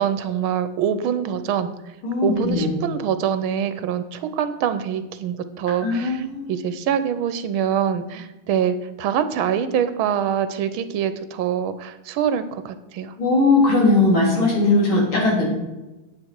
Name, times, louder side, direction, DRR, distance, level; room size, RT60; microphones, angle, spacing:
voice 1, 0.0-1.7 2.2-6.2 6.5-13.1, right 8 dB, 90° right, 11 dB, 1.5 m, -24 dB
voice 2, 2.0-2.7 5.8-6.6 13.2-15.5, left 2 dB, 80° left, -4 dB, 4.3 m, -19 dB
9.6 x 8.7 x 4.6 m, 1.1 s
omnidirectional pair, 2.3 m